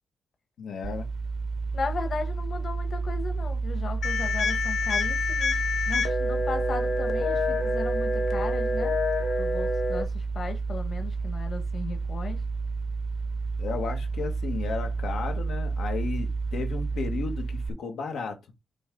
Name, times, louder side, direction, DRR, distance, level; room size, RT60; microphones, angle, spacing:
voice 1, 0.6-1.1 13.6-18.4, left 5 dB, 90° left, 1.6 m, -34 dB
sound 1, 0.8-17.7, right 4 dB, 50° right, 0.7 m, -30 dB
voice 2, 1.7-9.0 9.4-12.4, left 4 dB, 45° left, 1.5 m, -36 dB
sound 2, 4.0-10.0, left 3 dB, 70° left, 1.4 m, -27 dB
8.3 x 3.5 x 3.9 m
wide cardioid pair, 165°, 0 cm